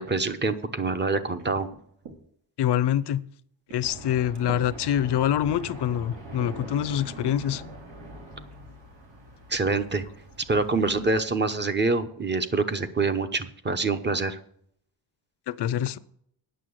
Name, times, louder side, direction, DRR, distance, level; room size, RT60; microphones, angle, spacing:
voice 1, 0.0-1.7 9.5-10.0 10.5-14.4, right 3 dB, 25° right, 0.9 m, -26 dB
sound 1, 1.4-2.2 2.9-3.1 3.7-4.0 4.3-4.7 5.3-5.4 6.0-6.7 7.8-8.0 8.5-8.7 9.6-9.8 10.2-10.3 10.6-11.0, right 4 dB, 65° right, 2.2 m, -46 dB
voice 2, 2.6-3.3 3.7-7.6 15.5-16.0, left 11 dB, 65° left, 0.6 m, -25 dB
sound 2, 3.8-11.2, right 1 dB, 90° right, 3.7 m, -43 dB
9.1 x 6.7 x 8.0 m
wide cardioid pair, 135°, 44 cm